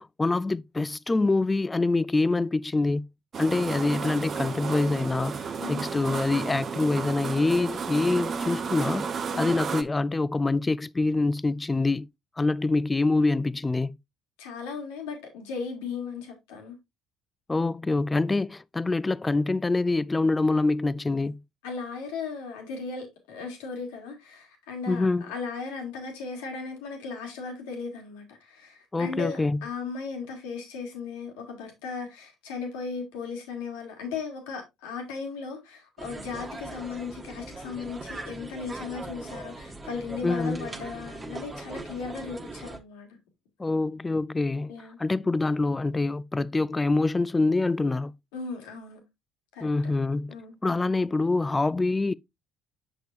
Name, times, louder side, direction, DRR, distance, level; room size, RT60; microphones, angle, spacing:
voice 1, 0.0-3.1 3.4-12.1 12.4-14.0 17.5-21.4 24.9-25.3 28.9-29.6 40.2-40.7 43.6-44.7 45.0-48.1 49.6-50.3 50.6-52.1, left 3 dB, 20° left, 0.4 m, -25 dB
sound 1, 3.3-9.8, right 6 dB, 45° right, 0.8 m, -32 dB
voice 2, 14.4-16.8 21.6-43.2 44.7-45.0 48.3-49.0 49.5-49.7 50.3-50.6, left 5 dB, 85° left, 2.1 m, -37 dB
sound 2, 36.0-42.8, right 2 dB, 25° right, 1.4 m, -40 dB
6.8 x 6.2 x 2.5 m
hypercardioid pair, 60°, 0 cm